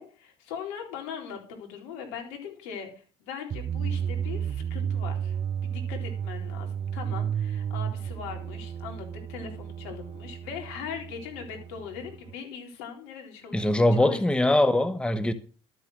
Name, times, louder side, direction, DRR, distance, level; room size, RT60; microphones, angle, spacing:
voice 1, 0.0-5.4 5.6-13.7 14.0-14.2, left 7 dB, 75° left, 3.9 m, -40 dB
sound 1, 3.5-12.3, right 8 dB, 40° right, 0.5 m, -33 dB
voice 2, 13.5-15.3, left 1 dB, 5° left, 1.0 m, -22 dB
12.5 x 7.5 x 6.2 m
hypercardioid pair, 65°, 14 cm